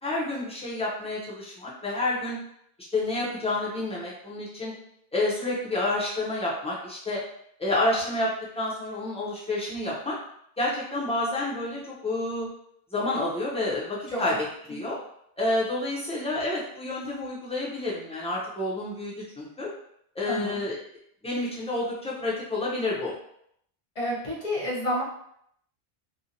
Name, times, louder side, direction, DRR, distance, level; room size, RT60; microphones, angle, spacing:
voice 1, 0.0-2.4 2.9-4.7 5.1-7.2 7.6-8.3 8.6-10.1 10.6-12.5 12.9-14.3 14.7-15.0 15.4-19.7 20.2-20.8 21.2-23.1, left 2 dB, 10° left, -6 dB, 0.4 m, -29 dB
voice 2, 20.3-20.6 23.9-25.0, equal, 40° left, -6 dB, 0.9 m, -30 dB
2.7 x 2.1 x 2.7 m, 0.71 s
omnidirectional pair, 1.1 m